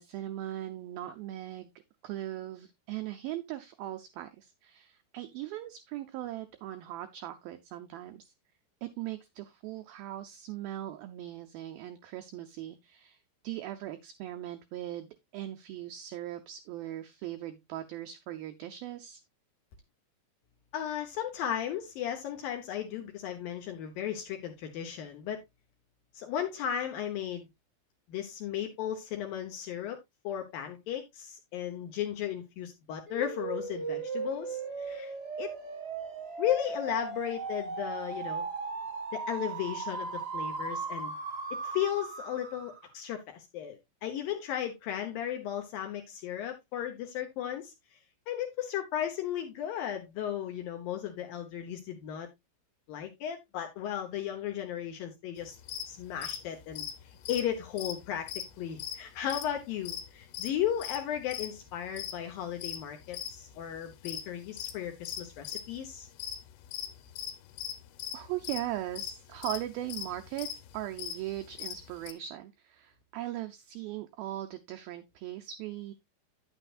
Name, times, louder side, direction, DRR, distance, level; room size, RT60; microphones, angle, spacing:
voice 1, 0.0-1.7 2.0-8.3 8.8-19.2 68.1-75.9, right 14 dB, 80° right, 7 dB, 2.2 m, -39 dB
voice 2, 20.7-25.4 26.1-27.5 28.1-30.0 30.2-35.5 36.4-38.5 39.1-41.1 41.6-47.7 48.3-52.3 52.9-55.6 55.9-56.9 57.3-66.1, left 10 dB, 70° left, 5 dB, 2.3 m, -35 dB
sound 1, 33.1-42.9, right 4 dB, 25° right, 1.2 m, -37 dB
sound 2, 55.6-55.9 56.2-56.4 56.7-58.5 58.8-59.0 59.3-59.6 59.9-60.5 60.8-61.0 61.3-62.1 62.6-63.4 63.7-65.8 66.1-66.4 66.6-72.1, left 10 dB, 85° left, 3.2 m, -38 dB
9.9 x 9.0 x 2.4 m, 0.19 s
omnidirectional pair, 4.9 m